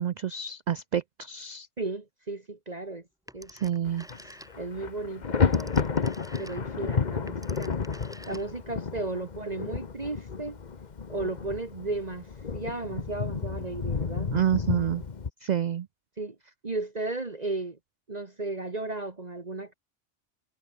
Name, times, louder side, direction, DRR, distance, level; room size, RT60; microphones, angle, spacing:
voice 1, 0.0-1.7 3.5-4.1 14.3-15.0 15.4-15.9, right 9 dB, 60° right, 0.4 m, -28 dB
voice 2, 1.8-3.0 3.3-3.5 4.6-5.8 6.4-7.7 8.3-10.6 11.1-12.3 12.5-14.4 16.2-16.4 16.6-17.8 18.1-19.7, right 2 dB, 35° right, 1.7 m, -34 dB
Telephone, 3.3-4.8 5.2-8.8, equal, 5° right, 3.7 m, -49 dB
Thunder, 3.8-4.2 4.5-15.3, left 5 dB, 40° left, 1.1 m, -31 dB
omnidirectional pair, 1.2 m